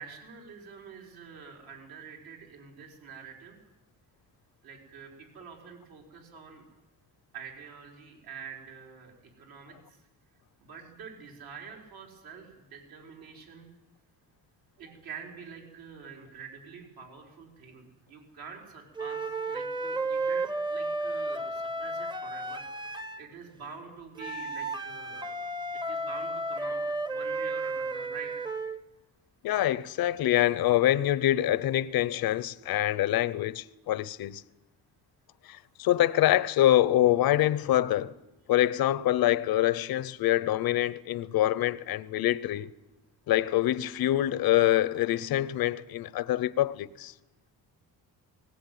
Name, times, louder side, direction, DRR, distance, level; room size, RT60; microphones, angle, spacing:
voice 1, 0.0-3.6 4.6-6.6 7.3-9.7 10.6-13.7 14.8-22.6 22.9-25.5 25.9-26.8 27.1-28.3, right 6 dB, 70° right, 4.9 m, -46 dB
sound 1, 19.0-23.3 24.2-28.8, right 2 dB, 10° right, 0.8 m, -33 dB
voice 2, 29.4-34.4 35.5-38.1 38.5-42.7 43.3-47.1, left 13 dB, 70° left, 0.8 m, -25 dB
19.5 x 19.0 x 9.4 m
cardioid pair, 130°, 37 cm